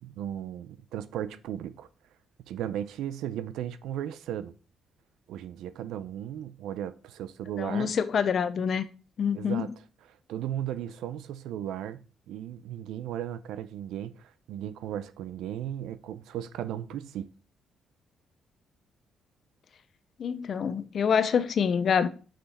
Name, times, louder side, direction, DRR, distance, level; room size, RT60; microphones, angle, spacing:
voice 1, 0.0-1.9 2.5-4.5 5.3-7.9 9.3-9.7 10.3-17.3, right 11 dB, 85° right, 0.5 m, -36 dB
voice 2, 7.6-8.9 9.2-9.7 20.2-22.1, left 7 dB, 55° left, 0.7 m, -26 dB
6.0 x 5.6 x 4.1 m
cardioid pair, 90°, 0 cm